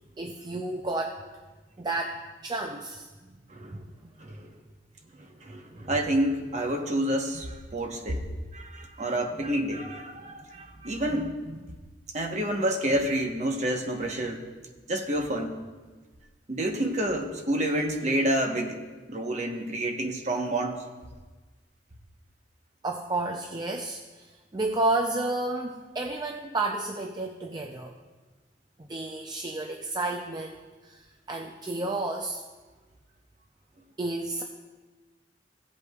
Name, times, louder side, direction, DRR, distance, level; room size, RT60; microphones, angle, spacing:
voice 1, 0.2-1.2 1.8-3.1 3.7-3.8 11.1-11.6 22.8-27.9 28.9-32.4 34.0-34.4, right 2 dB, 25° right, 2 dB, 0.4 m, -31 dB
voice 2, 4.2-4.5 5.4-8.2 8.5-11.3 12.1-14.4 14.9-15.5 16.5-18.8 19.1-20.8, right 1 dB, 40° right, 2 dB, 1.1 m, -28 dB
16.5 x 8.1 x 2.4 m, 1.3 s
head